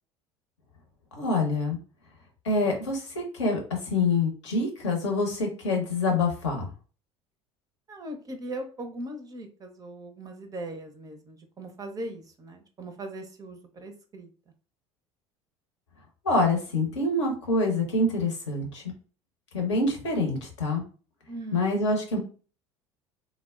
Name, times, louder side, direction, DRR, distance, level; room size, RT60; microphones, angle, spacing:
voice 1, 1.1-1.8 2.4-6.7 16.2-18.9 19.5-20.8 21.5-22.2, left 2 dB, 70° left, 2 dB, 0.8 m, -26 dB
voice 2, 7.9-14.3 21.3-21.8, right 1 dB, 25° right, 6 dB, 0.4 m, -39 dB
3.3 x 2.0 x 2.3 m, 0.38 s
figure-of-eight pair, 65°, 15 cm